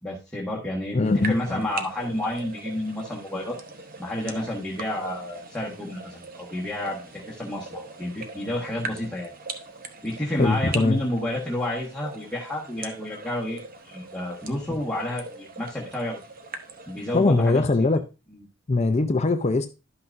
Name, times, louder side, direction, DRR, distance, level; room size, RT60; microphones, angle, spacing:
voice 1, 0.0-3.6 4.0-9.3 10.0-16.2 16.9-17.6 17.9-18.0 18.3-18.4, left 1 dB, 5° left, 1.3 m, -30 dB
voice 2, 0.9-1.6 10.4-11.0 17.1-18.0 18.7-19.7, left 3 dB, 30° left, 0.5 m, -21 dB
sound 1, 1.0-17.3, right 4 dB, 40° right, 0.8 m, -41 dB
12.0 x 5.8 x 2.5 m
head